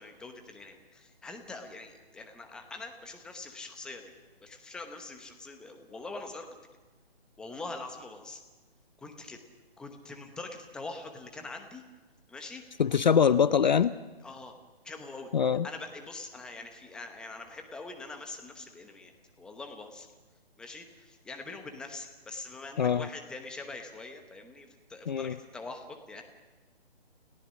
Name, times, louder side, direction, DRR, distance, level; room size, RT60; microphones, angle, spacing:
voice 1, 0.0-4.1 4.4-6.5 7.4-8.4 9.0-9.4 9.8-11.8 12.3-12.6 12.9-13.0 14.2-14.5 14.8-15.3 15.6-19.1 19.4-20.1 20.6-26.3, left 3 dB, 5° left, 5 dB, 0.9 m, -43 dB
voice 2, 12.8-13.9 15.3-15.7 22.8-23.1 25.1-25.3, left 7 dB, 45° left, 16 dB, 0.6 m, -23 dB
30.0 x 18.0 x 6.3 m, 1.2 s
hypercardioid pair, 155°, 32 cm